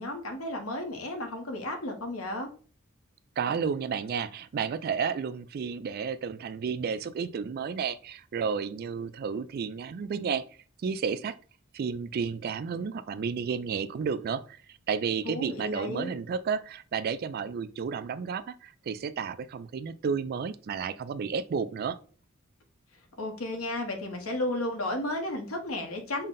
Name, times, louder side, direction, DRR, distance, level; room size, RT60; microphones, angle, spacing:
voice 1, 0.0-2.5 15.2-16.1 23.2-26.3, left 1 dB, 85° left, 1.0 m, -33 dB
voice 2, 3.4-10.4 10.8-11.4 11.7-22.0, right 6 dB, 45° right, 0.3 m, -32 dB
5.5 x 2.1 x 3.7 m
head